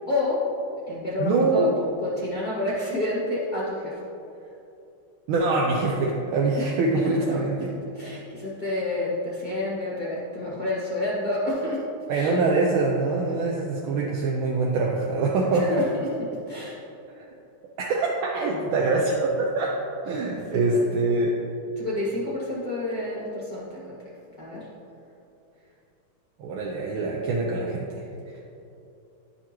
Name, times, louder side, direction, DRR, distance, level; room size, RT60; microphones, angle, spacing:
voice 1, 0.1-0.4 0.9-1.7 2.0-4.0 6.6-6.7 7.9-11.8 12.1-12.4 15.5-16.1 16.5-16.8 20.5-20.8 21.8-24.0 24.4-24.7, left 2 dB, 50° left, -8 dB, 0.5 m, -29 dB
voice 2, 1.2-1.7 5.3-7.7 12.1-15.8 17.2-17.3 17.8-19.7 20.0-21.4 26.4-27.9, right 3 dB, 80° right, -2 dB, 1.5 m, -24 dB
9.9 x 5.6 x 3.0 m, 2.8 s
omnidirectional pair, 2.3 m